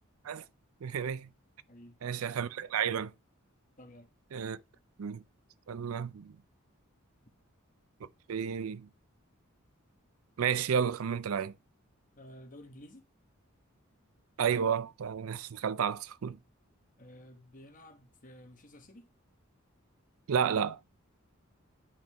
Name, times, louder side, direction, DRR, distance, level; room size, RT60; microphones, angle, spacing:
voice 1, 0.8-1.3 2.0-3.1 4.3-4.6 5.0-5.2 5.7-6.3 8.3-8.9 10.4-11.5 14.4-16.4 20.3-20.8, right 7 dB, 80° right, 0.4 m, -31 dB
voice 2, 1.7-2.0 3.8-4.1 12.2-13.1 17.0-19.1, left 1 dB, 40° left, 1.2 m, -52 dB
10.0 x 5.2 x 2.9 m
head